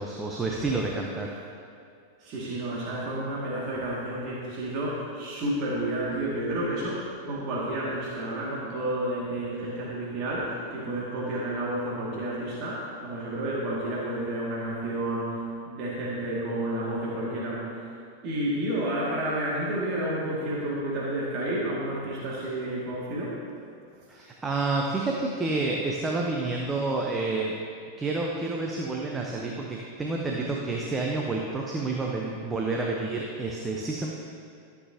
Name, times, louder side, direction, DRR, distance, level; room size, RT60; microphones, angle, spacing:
voice 1, 0.0-1.3 24.1-27.6 28.0-34.1, right 3 dB, 15° right, -1 dB, 0.8 m, -29 dB
voice 2, 2.2-15.4 15.7-17.9 18.2-23.4, right 1 dB, 40° right, -6 dB, 2.0 m, -30 dB
13.0 x 7.0 x 2.8 m, 2.5 s
figure-of-eight pair, 90°, 0 cm